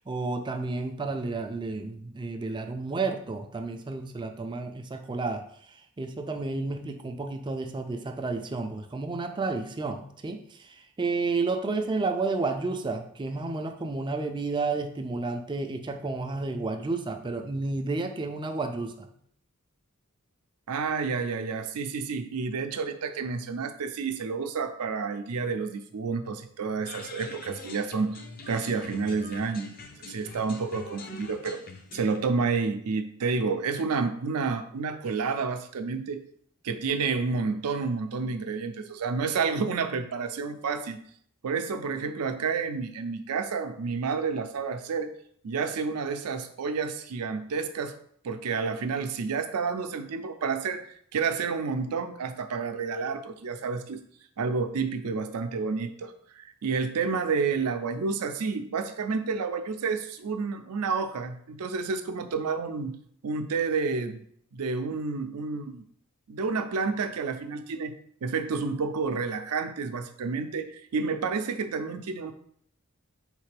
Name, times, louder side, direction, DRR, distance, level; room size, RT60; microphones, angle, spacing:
voice 1, 0.1-5.4 6.0-10.4 11.0-19.1, right 3 dB, 20° right, 6 dB, 0.3 m, -31 dB
voice 2, 20.7-28.2 28.5-29.8 30.1-31.6 31.9-36.2 36.6-41.0 41.4-45.1 45.4-48.0 48.2-50.9 51.1-54.0 54.4-63.0 63.2-64.2 64.5-65.8 66.3-68.0 68.2-72.3, right 5 dB, 80° right, 9 dB, 0.5 m, -30 dB
sound 1, 26.8-32.2, left 3 dB, 40° left, 0.5 m, -44 dB
4.2 x 3.2 x 3.3 m, 0.64 s
head